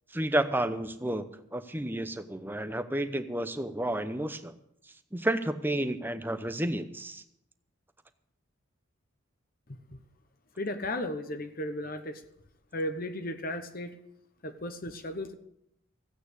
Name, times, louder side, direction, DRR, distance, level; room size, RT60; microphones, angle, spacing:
voice 1, 0.1-1.3 1.5-4.5 5.1-7.2, right 1 dB, 10° right, 10 dB, 0.8 m, -31 dB
voice 2, 10.6-12.2 12.7-13.9 14.4-15.3, left 1 dB, 45° left, 8 dB, 1.1 m, -35 dB
15.5 x 8.8 x 8.3 m, 0.75 s
head